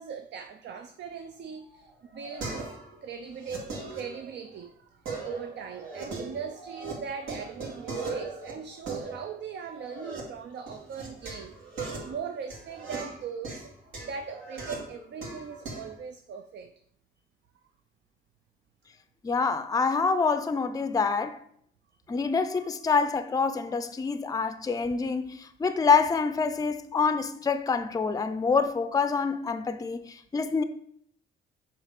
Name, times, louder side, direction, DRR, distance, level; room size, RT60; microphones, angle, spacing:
voice 1, 0.0-2.7 3.0-11.6 12.0-13.7 14.0-16.7 22.5-22.7, right 6 dB, 60° right, 0.6 m, -40 dB
sound 1, 1.6-3.0 3.3-4.6 5.1-6.9 7.2-10.2 10.7-15.9, right 3 dB, 80° right, 2.2 m, -39 dB
voice 2, 19.2-21.4 22.1-30.6, left 5 dB, 20° left, 0.5 m, -26 dB
6.8 x 3.1 x 5.9 m
cardioid pair, 90°, 20 cm